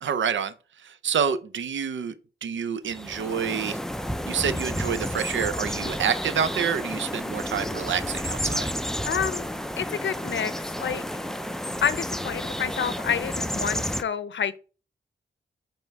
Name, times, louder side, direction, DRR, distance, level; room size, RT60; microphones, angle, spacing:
voice 1, 0.0-3.8 4.3-8.7, right 7 dB, 70° right, 0.6 m, -28 dB
sound 1, 2.9-14.0, equal, ahead, 0.4 m, -31 dB
voice 2, 9.1-9.5 9.8-10.5 10.8-11.0 11.8-14.6, left 7 dB, 65° left, 0.6 m, -28 dB
5.4 x 4.5 x 4.6 m
wide cardioid pair, 115°, 20 cm